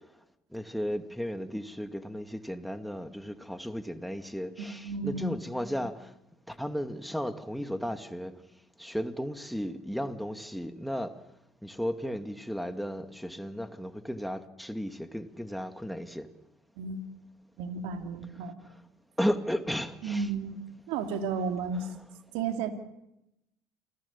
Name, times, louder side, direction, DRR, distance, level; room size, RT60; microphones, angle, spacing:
voice 1, 0.5-6.1 6.5-8.3 8.8-11.1 11.6-16.3 19.2-20.3 21.7-21.9, equal, ahead, 7 dB, 2.2 m, -34 dB
voice 2, 4.8-5.4 16.8-17.1 17.6-18.6 20.0-20.6 20.9-21.9 22.3-22.7, right 5 dB, 70° right, 6 dB, 2.7 m, -32 dB
28.5 x 18.5 x 7.3 m, 0.86 s
hypercardioid pair, 65°, 10 cm